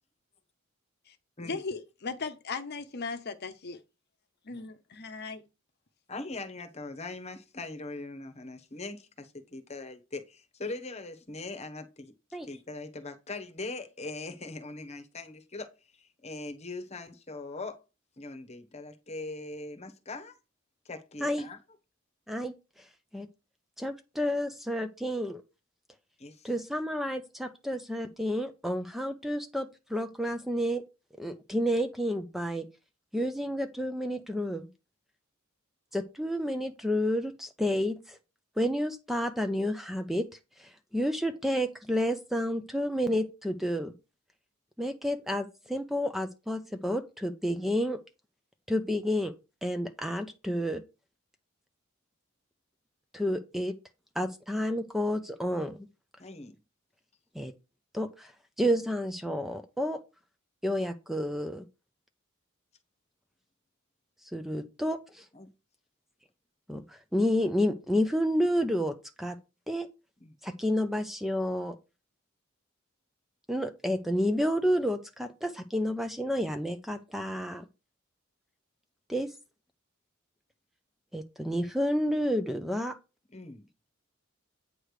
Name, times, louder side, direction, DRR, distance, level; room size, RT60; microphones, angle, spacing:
voice 1, 1.4-3.8 4.5-5.4, left 4 dB, 50° left, 0.8 m, -37 dB
voice 2, 6.1-12.1 12.4-15.7 16.0-17.8 18.2-20.3 20.8-21.6 26.2-26.5 56.2-56.5 65.3-65.5 70.2-70.3 83.3-83.7, left 2 dB, 30° left, 1.1 m, -41 dB
voice 3, 22.3-22.9 23.1-23.3 23.8-25.4 26.4-30.8 31.2-32.7 33.1-34.7 35.9-38.2 38.6-40.3 40.6-43.9 44.8-48.0 48.7-49.3 49.6-50.8 53.1-53.8 54.2-55.9 57.3-57.5 57.9-58.3 58.6-60.0 60.6-61.6 64.3-65.3 66.7-69.4 69.7-69.9 70.4-71.8 73.5-77.7 79.1-79.3 81.1-83.0, equal, ahead, 0.5 m, -30 dB
8.8 x 3.3 x 6.5 m
head